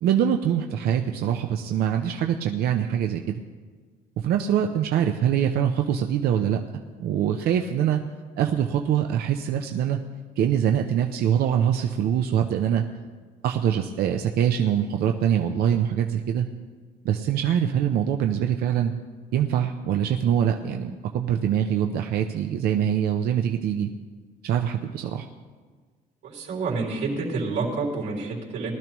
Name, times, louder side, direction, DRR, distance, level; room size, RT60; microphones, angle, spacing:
voice 1, 0.0-3.4 4.2-6.6 7.0-8.0 8.4-10.0 10.4-12.8 13.4-16.5 17.0-18.9 19.3-23.9 24.4-25.3, right 9 dB, 65° right, 4 dB, 0.6 m, -24 dB
voice 2, 26.2-28.7, right 3 dB, 85° right, -3 dB, 3.3 m, -28 dB
19.5 x 12.0 x 3.1 m, 1.5 s
cardioid pair, 110°, 17 cm